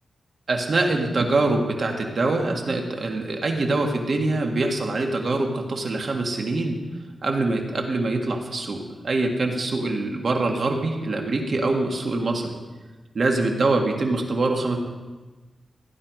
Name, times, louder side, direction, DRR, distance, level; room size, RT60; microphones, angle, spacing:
voice 1, 0.5-6.8 7.2-12.6 13.2-14.8, right 2 dB, 55° right, 2 dB, 1.9 m, -24 dB
15.5 x 9.9 x 5.2 m, 1.3 s
wide cardioid pair, 105°, 0 cm